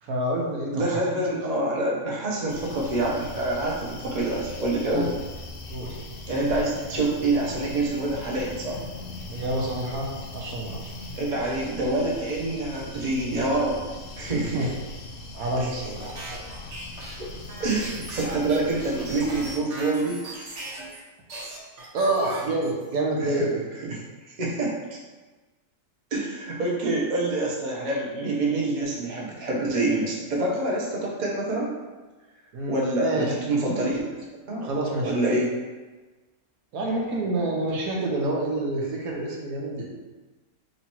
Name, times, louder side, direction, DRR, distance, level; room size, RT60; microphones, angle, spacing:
voice 1, 0.0-0.8 1.3-1.4 4.9-5.1 5.7-6.0 9.3-10.9 14.5-14.7 15.3-16.0 17.2-17.3 21.9-23.7 32.5-33.3 33.6-33.8 34.6-35.1 36.7-39.9, right 1 dB, 85° right, -2 dB, 1.2 m, -28 dB
voice 2, 0.7-5.1 6.3-8.8 11.1-13.8 14.2-14.7 15.6-15.7 17.2-17.3 17.6-20.2 23.2-23.5 23.8-24.8 26.1-31.7 32.7-34.0 34.4-34.7 35.0-35.5, right 2 dB, 40° right, -3 dB, 0.7 m, -26 dB
sound 1, 2.5-19.6, left 2 dB, 65° left, 0.5 m, -39 dB
sound 2, 16.0-21.0 21.3-23.0, right 2 dB, 60° right, 1.0 m, -38 dB
3.1 x 2.9 x 4.3 m, 1.3 s
omnidirectional pair, 1.5 m